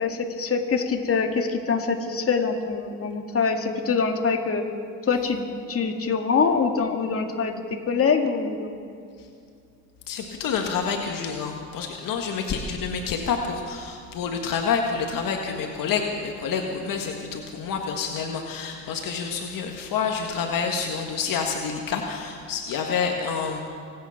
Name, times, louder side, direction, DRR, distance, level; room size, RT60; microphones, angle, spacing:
voice 1, 0.0-4.6 5.0-5.4 5.7-8.8, left 5 dB, 40° left, 3 dB, 2.1 m, -24 dB
voice 2, 10.1-23.6, left 6 dB, 65° left, 3 dB, 1.7 m, -28 dB
25.5 x 9.4 x 5.9 m, 2.4 s
supercardioid pair, 65°, 36 cm